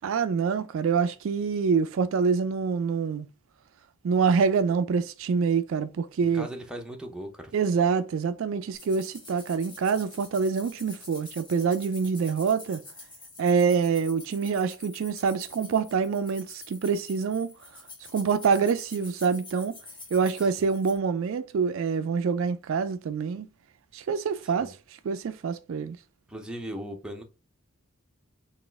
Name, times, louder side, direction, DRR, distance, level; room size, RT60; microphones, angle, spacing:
voice 1, 0.0-3.3 4.0-6.5 7.5-12.8 13.4-17.5 18.1-19.8 20.1-23.5 23.9-24.7 25.0-26.0, right 5 dB, 60° right, 0.3 m, -26 dB
voice 2, 6.2-7.5 20.6-20.7 24.4-24.7 26.3-27.2, equal, 5° right, 0.6 m, -38 dB
sound 1, 8.7-21.0, left 3 dB, 20° left, 1.3 m, -47 dB
4.1 x 2.4 x 3.4 m
head